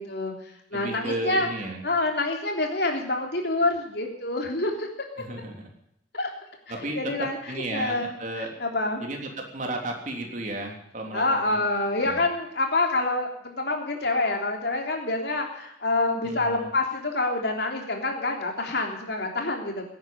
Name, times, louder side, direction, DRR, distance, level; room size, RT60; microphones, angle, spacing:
voice 1, 0.0-1.5 1.8-4.9 6.1-6.3 6.7-7.4 7.7-9.0 11.1-19.8, left 2 dB, 60° left, 2 dB, 3.4 m, -27 dB
voice 2, 0.7-1.8 5.2-5.7 6.7-8.5 9.0-11.6 12.0-12.2 16.2-16.7, right 1 dB, 45° right, 1 dB, 3.4 m, -34 dB
17.0 x 9.5 x 8.8 m, 0.75 s
head